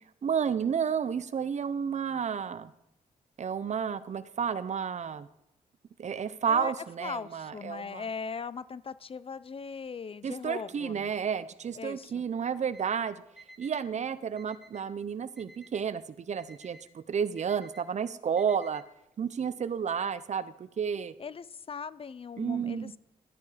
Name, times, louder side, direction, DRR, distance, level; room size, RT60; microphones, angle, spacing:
voice 1, 0.2-2.7 3.4-5.3 6.0-8.0 10.2-13.2 13.6-18.8 19.2-21.1 22.4-22.9, right 7 dB, 50° right, 16 dB, 0.7 m, -31 dB
voice 2, 6.5-11.2 11.7-12.2 21.2-23.0, left 5 dB, 40° left, 18 dB, 0.5 m, -39 dB
Alarm, 12.7-12.8 13.4-13.8 14.4-14.8 15.4-15.8 16.4-16.8 17.4-17.8 18.4-18.8, right 1 dB, 5° right, 2.9 m, -53 dB
13.0 x 8.4 x 5.0 m, 0.85 s
cardioid pair, 95°, 15 cm